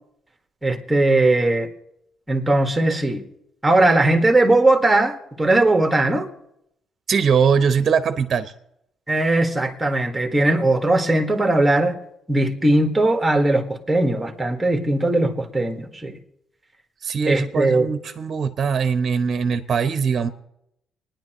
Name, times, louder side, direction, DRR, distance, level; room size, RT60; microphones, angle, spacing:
voice 1, 0.6-1.7 2.3-3.2 3.6-6.3 9.1-12.0 12.3-16.2 17.3-17.9, right 2 dB, 10° right, 1.7 m, -19 dB
voice 2, 7.1-8.5 17.0-20.3, right 6 dB, 50° right, 0.8 m, -21 dB
26.5 x 10.0 x 3.0 m
cardioid pair, 90°, 0 cm